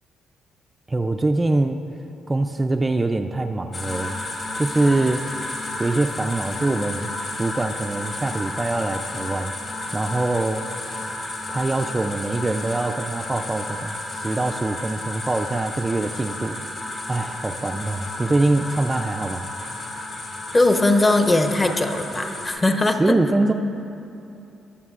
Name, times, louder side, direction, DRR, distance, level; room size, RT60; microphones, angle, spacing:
voice 1, 0.9-1.8 2.3-4.2 4.6-5.5 5.8-7.1 7.4-9.5 9.9-10.7 11.5-16.6 17.1-19.5 23.0-23.5, right 2 dB, 20° right, 5 dB, 0.4 m, -23 dB
sound 1, 3.7-22.5, left 2 dB, 50° left, 2.4 m, -32 dB
voice 2, 20.5-23.1, left 2 dB, 25° left, 5 dB, 0.8 m, -19 dB
21.5 x 7.1 x 2.5 m, 2.8 s
cardioid pair, 90°, 0 cm